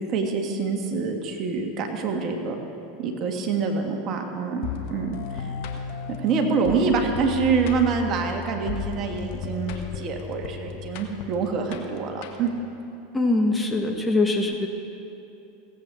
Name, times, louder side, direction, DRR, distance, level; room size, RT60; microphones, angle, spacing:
voice 1, 0.0-2.6 3.0-5.5 6.1-12.5, right 5 dB, 45° right, 3 dB, 1.7 m, -26 dB
sound 1, 4.6-12.7, left 6 dB, 60° left, 1.4 m, -35 dB
voice 2, 13.1-14.7, left 2 dB, 10° left, 2 dB, 1.4 m, -22 dB
17.0 x 8.4 x 6.2 m, 2.8 s
hypercardioid pair, 85°, 0 cm